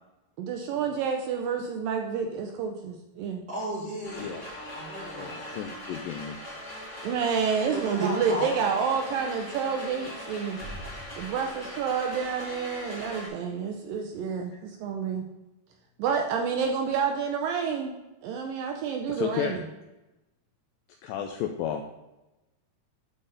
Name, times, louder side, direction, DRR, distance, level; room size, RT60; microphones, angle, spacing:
voice 1, 0.4-3.4 7.0-10.6 11.2-15.2 16.0-17.9 18.2-19.6, right 6 dB, 85° right, 3 dB, 2.1 m, -29 dB
voice 2, 3.5-5.7 7.7-8.6, equal, 30° right, -7 dB, 2.0 m, -35 dB
sound 1, 4.0-13.3, equal, 20° left, 1.5 m, -40 dB
voice 3, 5.2-6.4 19.2-19.6 21.0-21.8, left 9 dB, 85° left, 4 dB, 2.0 m, -32 dB
12.0 x 4.0 x 3.9 m, 1.0 s
omnidirectional pair, 4.5 m